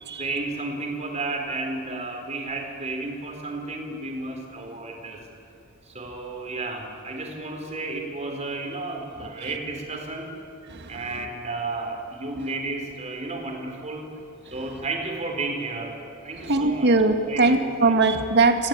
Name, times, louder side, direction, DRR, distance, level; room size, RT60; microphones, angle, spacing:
voice 1, 0.2-5.2 5.9-10.3 10.9-14.1 14.5-16.0 16.2-16.9 17.2-17.9, right 2 dB, 30° right, 2 dB, 4.3 m, -32 dB
voice 2, 10.7-11.3 14.5-14.7 16.4-18.7, right 3 dB, 55° right, 6 dB, 1.9 m, -22 dB
27.5 x 17.5 x 9.0 m, 2.8 s
head